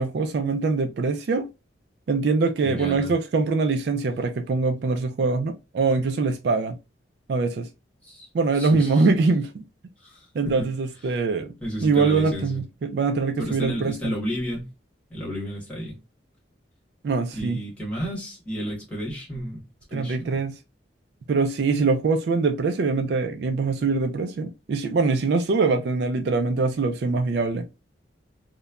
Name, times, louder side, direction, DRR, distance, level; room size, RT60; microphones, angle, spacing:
voice 1, 0.0-1.5 2.1-6.8 7.3-7.7 8.3-9.6 10.3-11.5 11.8-14.1 17.0-17.6 19.9-20.6 21.3-27.7, right 4 dB, 60° right, 0.3 m, -23 dB
voice 2, 2.6-3.1 8.0-8.3 8.5-9.1 10.0-10.7 11.1-11.2 11.6-12.6 13.4-14.7 15.1-16.0 17.3-19.6 19.9-20.4, equal, 5° left, 1.2 m, -32 dB
2.9 x 2.1 x 2.3 m
head